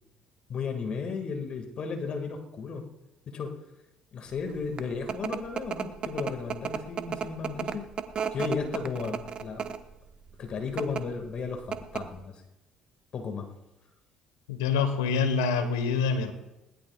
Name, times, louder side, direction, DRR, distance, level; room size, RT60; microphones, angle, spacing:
voice 1, 0.5-2.9 3.3-3.6 4.1-7.9 8.3-9.7 10.4-12.3 13.1-13.5, left 5 dB, 55° left, 5 dB, 2.0 m, -34 dB
sound 1, 4.5-9.9 10.6-11.0 11.4-11.5 11.7-12.2, right 7 dB, 50° right, 1.1 m, -33 dB
voice 2, 14.5-16.3, left 5 dB, 85° left, 9 dB, 1.3 m, -26 dB
21.0 x 18.5 x 2.4 m, 0.97 s
hypercardioid pair, 55°, 2 cm